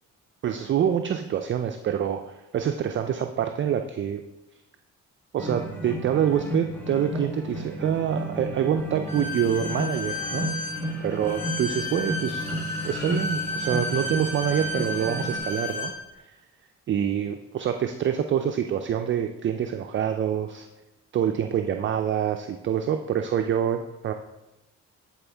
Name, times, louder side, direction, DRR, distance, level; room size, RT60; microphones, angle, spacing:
voice 1, 0.4-4.2 5.3-10.5 11.0-12.5 12.8-16.3 16.9-20.7 21.1-24.1, right 9 dB, 40° right, 6 dB, 0.4 m, -26 dB
sound 1, 5.4-15.4, equal, 5° left, 1.3 m, -33 dB
Bowed string instrument, 9.1-15.9, left 2 dB, 65° left, 1.9 m, -32 dB
8.8 x 4.4 x 3.4 m, 0.99 s
cardioid pair, 90°, 30 cm